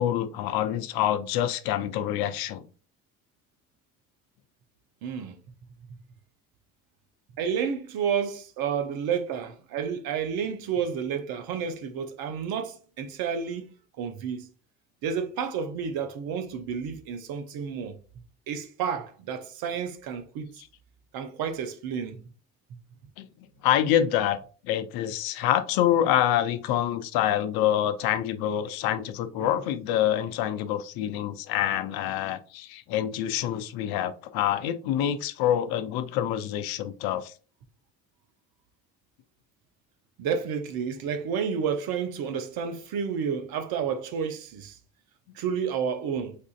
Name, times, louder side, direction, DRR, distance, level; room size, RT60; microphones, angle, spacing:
voice 1, 0.0-2.6 23.2-23.3 23.6-24.4 24.6-37.3, left 11 dB, 60° left, 0.5 m, -26 dB
voice 2, 5.0-5.4 7.4-14.5 15.0-18.0 18.5-20.5 21.1-22.2 29.4-29.5 40.2-44.8 45.3-46.3, right 7 dB, 60° right, 0.7 m, -30 dB
4.3 x 2.5 x 2.4 m
hypercardioid pair, 65°, 41 cm